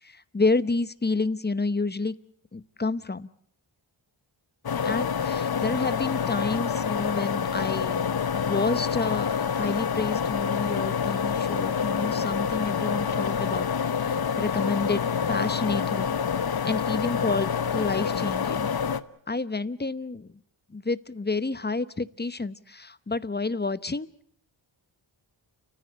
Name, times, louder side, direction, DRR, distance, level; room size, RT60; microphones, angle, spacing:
voice 1, 0.3-2.1 2.5-3.3 4.8-13.7 14.4-16.2 16.6-18.7 19.3-20.3 20.7-24.1, left 3 dB, 20° left, 16 dB, 0.9 m, -29 dB
sound 1, 4.7-19.0, left 7 dB, 50° left, 1.0 m, -27 dB
30.0 x 14.5 x 8.0 m, 0.65 s
wide cardioid pair, 70°, 48 cm